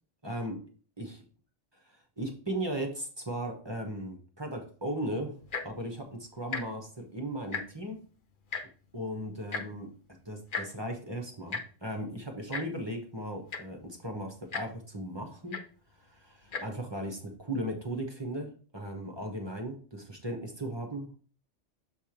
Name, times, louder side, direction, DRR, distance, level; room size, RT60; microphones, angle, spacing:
voice 1, 0.2-0.7 1.0-1.2 1.8-8.0 8.9-15.6 15.9-21.2, right 1 dB, 20° right, 1 dB, 1.1 m, -37 dB
Tick-tock, 5.4-5.8 6.4-6.6 6.9-7.1 7.4-7.9 8.5-8.6 9.5-9.6 10.5-10.7 11.5-11.6 12.5-12.6 13.2-13.3 13.5-13.8 14.5-14.6 15.5-15.6 16.4-16.6 17.3-17.4, left 5 dB, 45° left, 0.9 m, -35 dB
7.2 x 3.4 x 4.4 m, 0.40 s
omnidirectional pair, 1.3 m